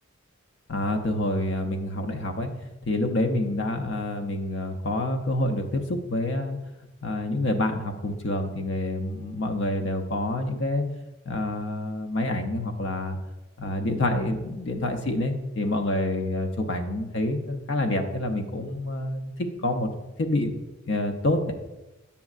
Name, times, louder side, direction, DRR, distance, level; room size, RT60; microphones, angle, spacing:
voice 1, 0.7-2.5 2.8-6.6 7.0-10.8 11.3-13.2 13.6-19.3 19.6-19.9 20.2-20.6 20.9-21.5, left 1 dB, 55° left, 5 dB, 0.6 m, -27 dB
7.0 x 6.2 x 2.4 m, 1.0 s
head